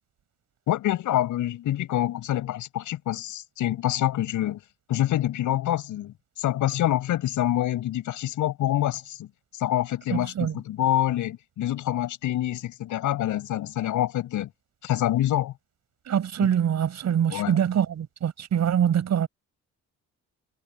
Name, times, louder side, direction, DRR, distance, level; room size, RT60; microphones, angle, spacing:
voice 1, 0.7-4.6 4.9-9.3 9.6-14.5 14.8-15.5 16.4-16.5 17.3-17.6, left 13 dB, 85° left, 6.6 m, -26 dB
voice 2, 16.1-19.3, right 9 dB, 60° right, 6.8 m, -24 dB
cardioid pair, 90°, 30 cm